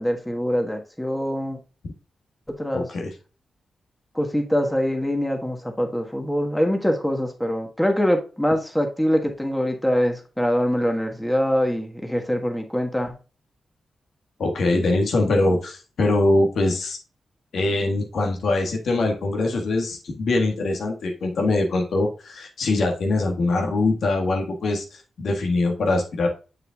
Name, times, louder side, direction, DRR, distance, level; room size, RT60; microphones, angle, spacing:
voice 1, 0.0-1.6 2.6-2.9 4.1-13.1, equal, 5° left, 3 dB, 1.4 m, -24 dB
voice 2, 2.7-3.1 14.4-17.0 17.5-26.3, left 2 dB, 75° left, 2 dB, 1.6 m, -23 dB
7.2 x 6.6 x 2.3 m, 0.33 s
cardioid pair, 70°, 0 cm